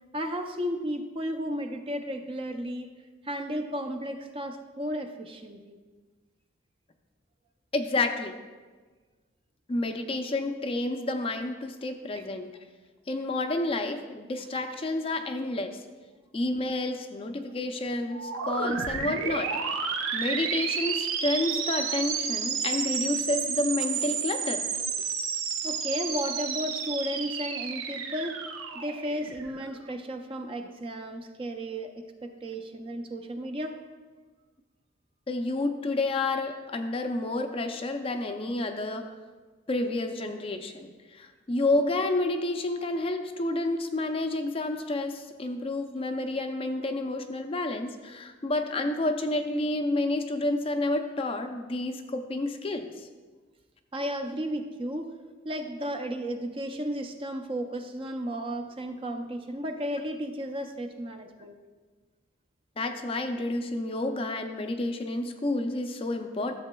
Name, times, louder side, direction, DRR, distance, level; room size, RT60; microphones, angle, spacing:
voice 1, 0.1-2.9 3.2-5.8 12.1-12.2 25.6-28.4 28.7-33.7 53.9-55.1 55.4-61.5, equal, 25° right, 6 dB, 0.5 m, -34 dB
voice 2, 7.7-8.4 9.7-12.5 13.1-15.8 16.3-19.5 20.1-24.7 35.3-39.1 39.7-53.1 62.8-66.6, left 2 dB, 30° left, 6 dB, 0.4 m, -30 dB
sound 1, 18.1-29.8, right 6 dB, 90° right, 0.7 m, -31 dB
13.0 x 7.3 x 2.3 m, 1.4 s
head